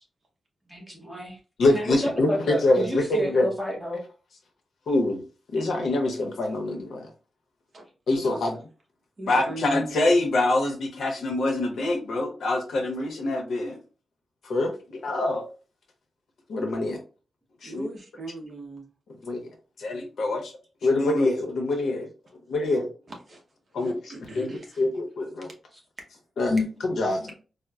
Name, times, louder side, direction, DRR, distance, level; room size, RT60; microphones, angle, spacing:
voice 1, 0.7-1.4 1.7-4.0, equal, ahead, -1 dB, 0.9 m, -30 dB
voice 2, 1.6-3.5 4.9-5.2 5.5-7.1 8.1-8.5 9.3-13.8 14.4-15.4 16.5-17.0 17.6-17.9 19.2-19.5 19.8-20.5 20.8-22.1 22.5-22.9 23.7-25.5 26.4-27.3, left 2 dB, 85° left, 3 dB, 0.9 m, -25 dB
voice 3, 7.7-8.4 9.2-10.2 17.6-18.9 23.3-23.4 23.7-24.8, right 2 dB, 35° right, 0 dB, 0.9 m, -40 dB
4.2 x 2.1 x 2.3 m, 0.35 s
wide cardioid pair, 170°, 0 cm